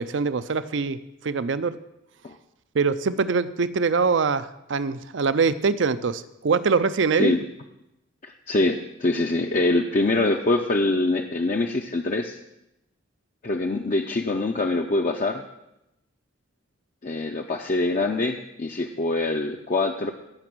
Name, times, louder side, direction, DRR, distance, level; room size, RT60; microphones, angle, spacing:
voice 1, 0.0-1.8 2.7-7.4, right 5 dB, 60° right, 14 dB, 0.5 m, -23 dB
voice 2, 8.2-12.4 13.4-15.4 17.0-20.1, left 2 dB, 40° left, 2 dB, 0.5 m, -24 dB
15.5 x 5.9 x 6.1 m, 0.88 s
head